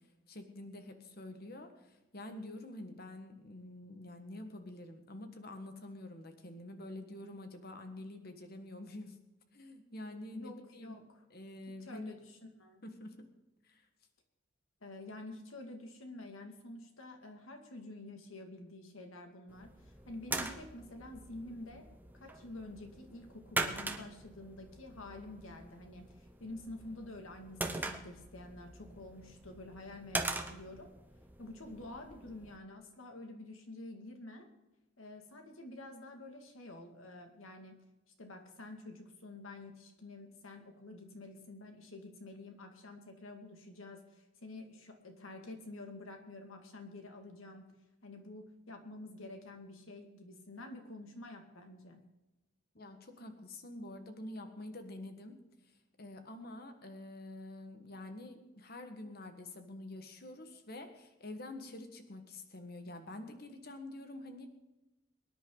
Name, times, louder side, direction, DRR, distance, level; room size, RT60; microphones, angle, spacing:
voice 1, 0.3-9.2 9.5-11.0 11.3-12.1 12.8-13.1 13.7-13.9 52.7-55.4 56.0-64.5, left 1 dB, 50° left, 7 dB, 1.5 m, -47 dB
voice 2, 10.3-11.2 11.8-12.8 14.8-21.8 22.1-30.9 31.4-34.5 35.0-37.7 38.2-47.7 48.0-52.0, left 2 dB, 90° left, 4 dB, 2.2 m, -49 dB
sound 1, 19.5-32.6, right 2 dB, 10° right, 0.8 m, -42 dB
23.0 x 10.0 x 3.9 m, 1.0 s
head